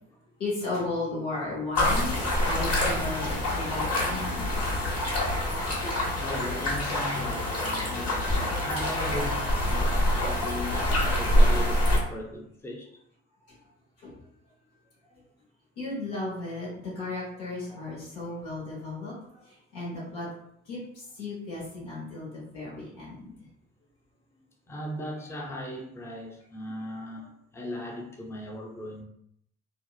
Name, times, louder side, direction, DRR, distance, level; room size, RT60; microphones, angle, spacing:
voice 1, 0.4-4.8 14.0-14.1 15.8-20.3 20.7-20.8 21.1-23.3, left 2 dB, 85° left, -6 dB, 1.0 m, -35 dB
sound 1, 1.8-12.0, left 1 dB, 45° left, 1.1 m, -26 dB
voice 2, 6.2-8.3 8.6-12.9 17.7-17.8 24.7-29.0, left 1 dB, 5° left, 0 dB, 0.5 m, -38 dB
2.7 x 2.0 x 2.3 m, 0.71 s
hypercardioid pair, 50°, 35 cm